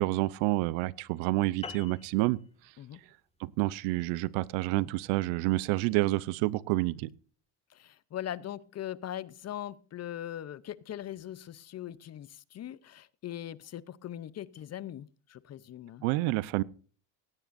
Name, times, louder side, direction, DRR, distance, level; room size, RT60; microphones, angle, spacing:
voice 1, 0.0-2.4 3.4-7.1 16.0-16.6, right 19 dB, 75° right, 0.8 m, -28 dB
sound 1, 1.6-6.4, left 5 dB, 10° left, 1.9 m, -49 dB
voice 2, 7.7-16.0, left 11 dB, 35° left, 0.6 m, -40 dB
16.5 x 16.5 x 2.6 m
supercardioid pair, 115°, 49 cm